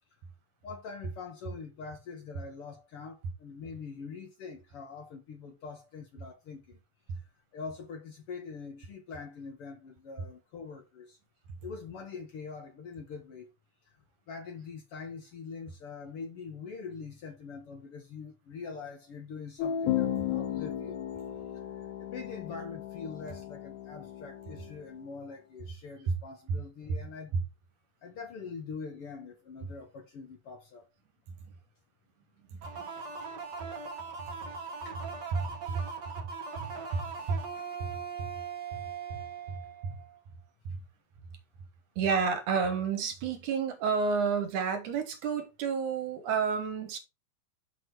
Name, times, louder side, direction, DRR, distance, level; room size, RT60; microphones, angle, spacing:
voice 1, 0.6-6.8 7.5-11.2 11.6-13.5 14.3-21.0 21.5-27.3 28.0-30.9 34.9-35.0, left 5 dB, 60° left, 1.6 m, -44 dB
sound 1, 19.6-24.9, left 10 dB, 85° left, 2.3 m, -35 dB
sound 2, 32.6-40.2, right 5 dB, 50° right, 1.4 m, -40 dB
voice 2, 35.3-35.8 36.6-37.4 37.8-37.9 39.8-39.9 42.0-47.0, right 5 dB, 75° right, 2.9 m, -30 dB
6.4 x 6.1 x 4.5 m
omnidirectional pair, 3.6 m